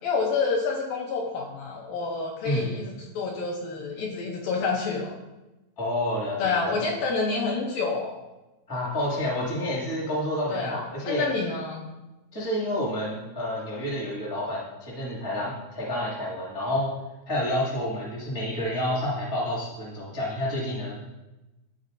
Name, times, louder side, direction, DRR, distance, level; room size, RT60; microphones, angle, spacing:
voice 1, 0.0-5.2 6.4-8.2 10.5-11.9, left 4 dB, 80° left, -1 dB, 2.2 m, -28 dB
voice 2, 2.4-2.8 5.8-6.8 8.7-11.2 12.3-16.9 17.3-20.9, left 1 dB, 25° left, -5 dB, 0.4 m, -29 dB
12.0 x 4.0 x 2.6 m, 1.0 s
omnidirectional pair, 4.6 m